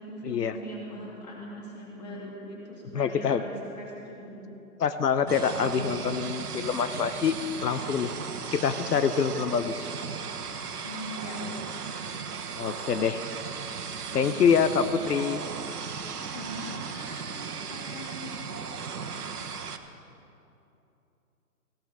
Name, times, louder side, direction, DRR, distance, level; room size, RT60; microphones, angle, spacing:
voice 1, 0.0-4.4 10.8-11.4 16.3-18.4, equal, 25° left, -4 dB, 2.8 m, -41 dB
voice 2, 2.9-3.4 4.8-7.3 7.6-8.1 8.5-9.9 12.6-13.2 14.1-15.4, left 7 dB, 85° left, 10 dB, 0.8 m, -25 dB
sound 1, 5.3-19.8, right 6 dB, 70° right, 1.2 m, -36 dB
18.5 x 17.0 x 3.6 m, 2.8 s
hypercardioid pair, 175°, 47 cm